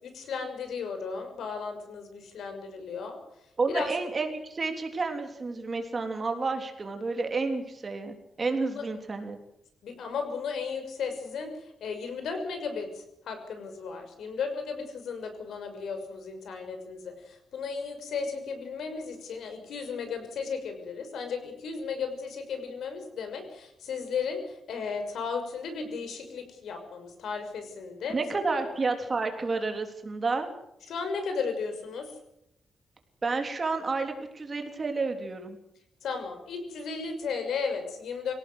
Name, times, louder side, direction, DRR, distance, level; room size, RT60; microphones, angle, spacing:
voice 1, 0.0-3.2 3.7-3.9 8.8-8.9 9.8-28.2 28.5-28.6 30.9-32.1 36.0-38.3, left 5 dB, 75° left, 6 dB, 6.1 m, -35 dB
voice 2, 3.6-9.4 28.1-30.5 33.2-35.6, right 3 dB, 25° right, 5 dB, 3.3 m, -30 dB
25.0 x 17.5 x 8.0 m, 0.78 s
wide cardioid pair, 155°, 0 cm